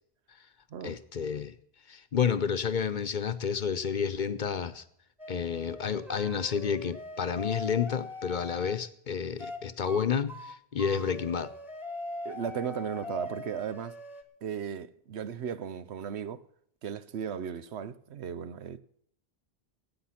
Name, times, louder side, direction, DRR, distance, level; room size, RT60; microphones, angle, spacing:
voice 1, 0.8-1.5 1.9-4.8 5.3-11.5, left 7 dB, 50° left, 0.9 m, -30 dB
sound 1, 5.2-8.8 9.4-9.6 9.9-10.0 10.3-14.2, left 2 dB, ahead, 1.5 m, -41 dB
voice 2, 12.2-14.0 14.4-16.4 16.8-18.8, right 8 dB, 90° right, 1.1 m, -36 dB
19.0 x 9.0 x 5.8 m
omnidirectional pair, 1.1 m